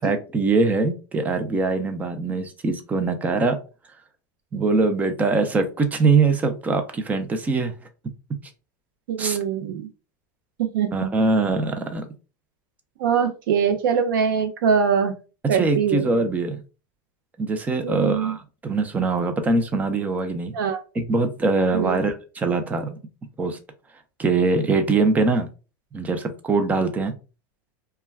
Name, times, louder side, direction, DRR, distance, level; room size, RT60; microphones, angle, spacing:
voice 1, 0.0-3.6 4.5-7.7 9.2-9.4 10.9-12.0 15.4-16.6 17.4-20.5 20.9-23.0 23.4-23.6 24.2-25.5 25.9-27.1, right 3 dB, 15° right, 7 dB, 0.4 m, -22 dB
voice 2, 9.1-9.9 10.6-11.1 13.0-15.2 15.5-16.1 17.8-18.3 20.5-20.8 21.7-21.9, right 7 dB, 85° right, 8 dB, 0.6 m, -23 dB
2.2 x 2.2 x 3.2 m, 0.33 s
supercardioid pair, 140°, 11 cm